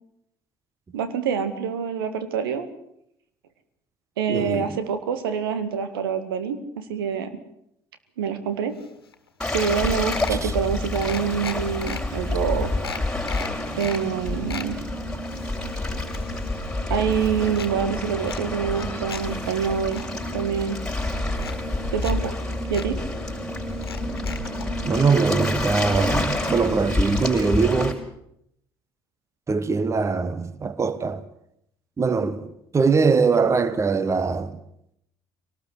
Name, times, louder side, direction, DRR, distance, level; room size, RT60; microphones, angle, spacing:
voice 1, 0.9-2.7 4.2-7.4 8.2-8.8 9.5-12.7 13.8-14.8 16.9-20.0 20.3-20.8 21.9-22.4 22.7-23.0, right 7 dB, 70° right, 1.8 m, -26 dB
voice 2, 4.3-4.8 10.3-10.5 24.8-28.0 29.5-31.2 32.0-34.6, right 4 dB, 25° right, 1.3 m, -22 dB
sound 1, 8.8-8.9 9.1-9.3 9.6-10.5 10.9-12.0 12.5-12.6 12.8-14.0 14.3-14.7 15.2-16.7 17.0-17.7 18.2-19.2 19.6-20.1 20.9-21.0 21.4-22.1 22.4-22.5 22.7-22.9 23.7-24.7 25.6-25.7 25.9-26.0, left 6 dB, 80° left, 1.7 m, -36 dB
Waves surf, 9.4-27.9, left 2 dB, 5° left, 5.6 m, -28 dB
23.0 x 19.0 x 8.2 m
figure-of-eight pair, 55°, 12 cm